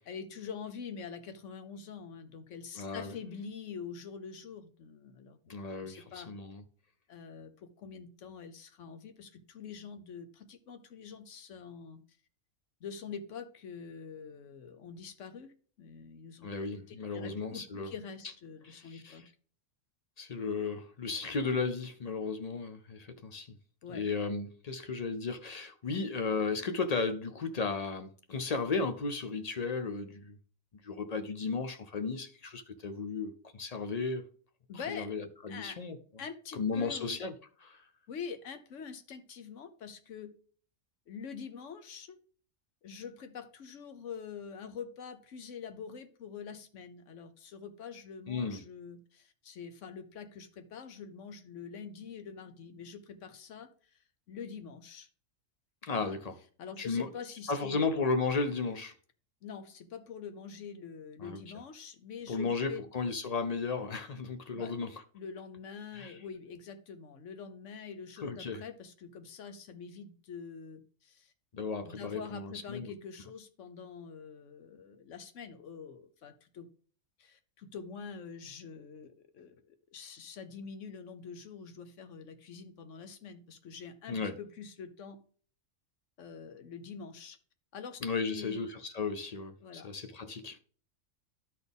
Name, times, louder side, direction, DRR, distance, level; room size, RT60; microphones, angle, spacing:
voice 1, 0.1-6.3 7.1-12.0 12.8-16.5 16.9-19.3 23.8-24.0 34.7-35.1 35.5-35.8 36.2-37.2 38.1-40.3 41.1-42.2 42.8-54.0 54.3-55.1 56.0-56.2 56.6-57.9 59.4-62.9 64.5-64.7 65.1-71.3 71.8-76.7 77.2-85.2 86.2-87.4 87.7-88.6 89.6-89.9, left 6 dB, 70° left, 1.1 m, -45 dB
voice 2, 2.7-3.1 5.5-6.6 16.4-17.9 18.7-19.2 20.2-23.5 23.9-30.4 30.8-34.2 34.9-36.0 36.5-37.3 37.6-37.8 48.3-48.6 55.8-56.4 56.8-57.1 57.5-58.9 61.2-61.4 62.3-65.0 65.9-66.2 68.2-68.6 71.5-72.9 84.1-84.4 88.0-90.6, left 4 dB, 50° left, 0.5 m, -34 dB
12.5 x 4.1 x 3.5 m
omnidirectional pair, 1.3 m